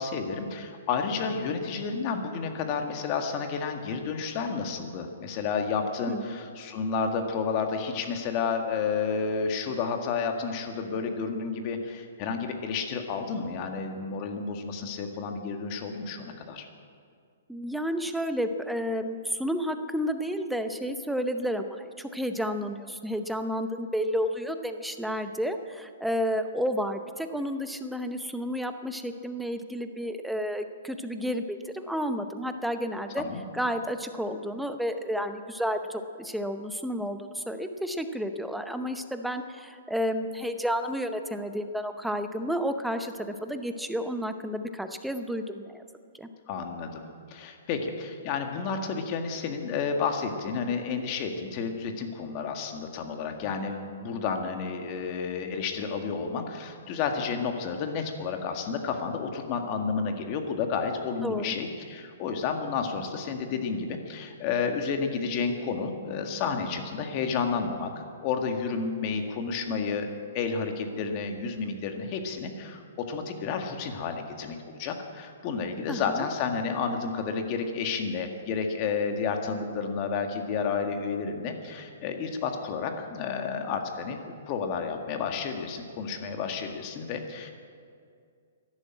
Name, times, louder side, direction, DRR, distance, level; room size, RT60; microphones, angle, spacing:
voice 1, 0.0-16.7 33.2-33.4 46.5-70.1 70.3-84.2 84.5-87.5, left 5 dB, 35° left, 5 dB, 1.7 m, -31 dB
voice 2, 17.5-33.2 33.5-45.8 46.1-46.3 61.2-61.5 75.9-76.3, equal, ahead, 7 dB, 0.7 m, -31 dB
14.0 x 11.5 x 8.8 m, 2.3 s
hypercardioid pair, 155°, 0 cm